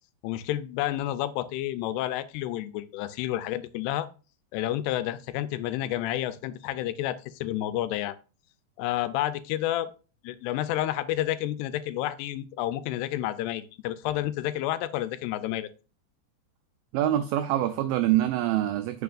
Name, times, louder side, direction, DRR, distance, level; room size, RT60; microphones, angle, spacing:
voice 1, 0.2-4.1 4.5-8.2 8.8-9.9 10.2-15.7, left 13 dB, 90° left, 2.7 m, -30 dB
voice 2, 16.9-19.0, right 13 dB, 90° right, 2.0 m, -25 dB
9.3 x 6.0 x 2.5 m
omnidirectional pair, 4.7 m